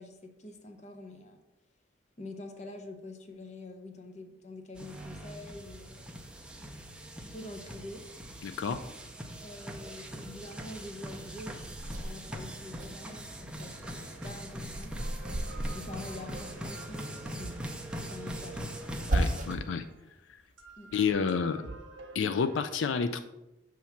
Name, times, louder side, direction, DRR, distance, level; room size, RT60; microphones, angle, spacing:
voice 1, 0.0-1.4 2.2-6.0 7.2-8.0 9.4-14.9 15.7-18.7 20.8-20.9, left 2 dB, 35° left, 6 dB, 0.7 m, -46 dB
sound 1, 4.8-19.6, equal, 5° right, 0.5 m, -42 dB
voice 2, 8.4-8.8 19.1-19.8 20.9-21.6 22.1-23.2, left 6 dB, 80° left, 10 dB, 0.4 m, -29 dB
sound 2, 11.6-12.9 13.3-16.8 17.9-19.7 20.2-21.1, right 1 dB, 40° right, 0.7 m, -36 dB
sound 3, 13.7-14.5 14.8-20.1 20.6-22.6, right 3 dB, 80° right, 0.8 m, -48 dB
7.0 x 3.1 x 5.7 m, 0.93 s
head